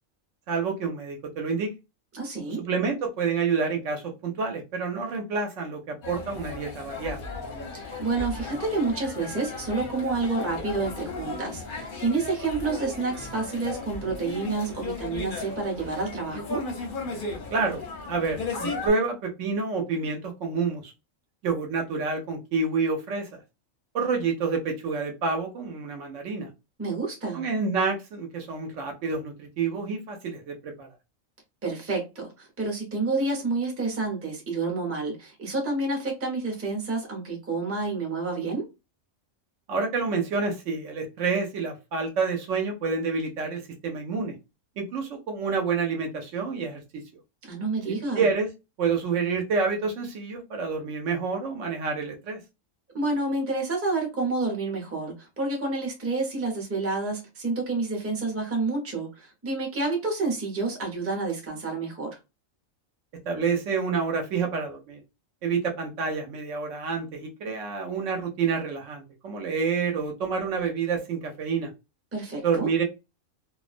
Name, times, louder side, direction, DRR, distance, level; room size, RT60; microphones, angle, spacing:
voice 1, 0.5-1.7 2.6-7.2 17.5-20.9 21.4-23.4 23.9-26.5 27.3-30.9 39.7-44.3 44.8-47.0 48.2-48.5 48.8-52.4 63.3-65.0 65.4-71.7 72.4-72.8, right 5 dB, 70° right, 0.9 m, -28 dB
voice 2, 2.1-2.6 7.7-16.6 26.8-27.4 31.6-38.7 47.4-48.3 52.9-62.2 72.1-72.7, right 3 dB, 15° right, 0.6 m, -29 dB
sound 1, 6.0-18.9, left 3 dB, 50° left, 0.7 m, -36 dB
2.4 x 2.1 x 2.4 m
omnidirectional pair, 1.4 m